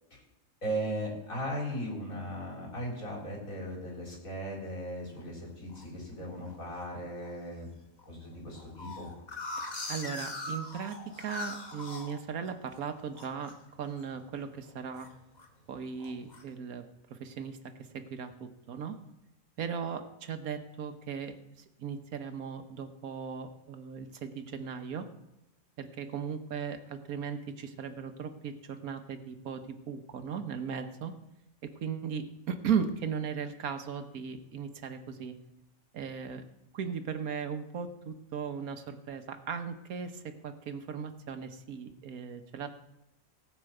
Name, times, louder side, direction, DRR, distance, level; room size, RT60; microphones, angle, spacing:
voice 1, 0.6-7.7 8.1-9.1, equal, 70° left, -2 dB, 4.4 m, -37 dB
sound 1, 5.2-5.9 6.4-6.8 7.2-7.3 7.6-7.7 8.0-12.8 13.1-13.6 13.9-14.2 14.5-15.5 16.0-16.4, left 3 dB, 30° left, 1.4 m, -41 dB
voice 2, 9.9-15.1 15.7-16.8 17.1-17.6 17.9-19.0 19.6-25.1 25.8-31.1 31.6-35.3 35.9-36.4 36.7-42.7, right 7 dB, 85° right, 8 dB, 1.5 m, -37 dB
18.0 x 6.1 x 7.8 m, 0.89 s
omnidirectional pair, 1.5 m